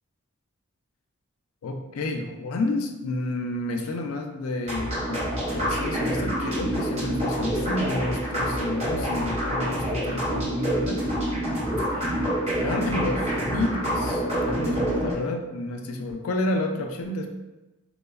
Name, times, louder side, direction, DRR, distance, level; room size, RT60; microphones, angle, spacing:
voice 1, 1.6-5.3 5.5-11.1 11.9-12.3 12.6-17.3, left 2 dB, 75° left, 4 dB, 0.3 m, -30 dB
sound 1, 4.6-15.1, right 1 dB, 30° right, 0.7 m, -27 dB
2.9 x 2.1 x 2.3 m, 1.0 s
head